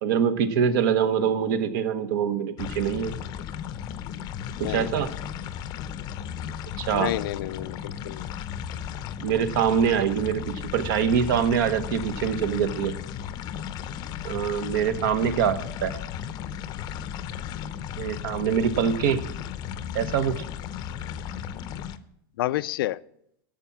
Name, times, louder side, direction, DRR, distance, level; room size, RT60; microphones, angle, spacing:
voice 1, 0.0-3.1 4.6-5.1 6.8-7.1 9.2-12.9 14.2-15.9 18.0-19.2 19.9-20.3, right 8 dB, 65° right, 10 dB, 1.1 m, -24 dB
sound 1, 2.6-22.0, left 9 dB, 35° left, 0.6 m, -35 dB
voice 2, 4.6-4.9 6.9-8.3 22.4-23.0, left 15 dB, 80° left, 16 dB, 0.4 m, -29 dB
11.5 x 7.4 x 7.0 m, 0.75 s
supercardioid pair, 150°, 12 cm